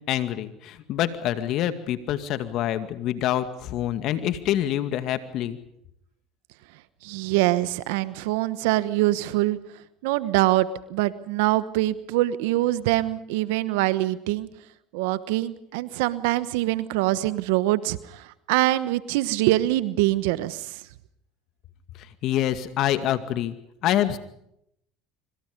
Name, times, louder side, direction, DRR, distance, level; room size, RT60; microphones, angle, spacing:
voice 1, 0.1-5.6 22.2-23.6 23.8-24.2, left 12 dB, 60° left, 11 dB, 2.2 m, -26 dB
voice 2, 7.0-9.6 10.0-14.5 14.9-20.8, right 16 dB, 80° right, 16 dB, 1.1 m, -24 dB
25.5 x 25.0 x 5.3 m, 0.75 s
supercardioid pair, 90°, 0 cm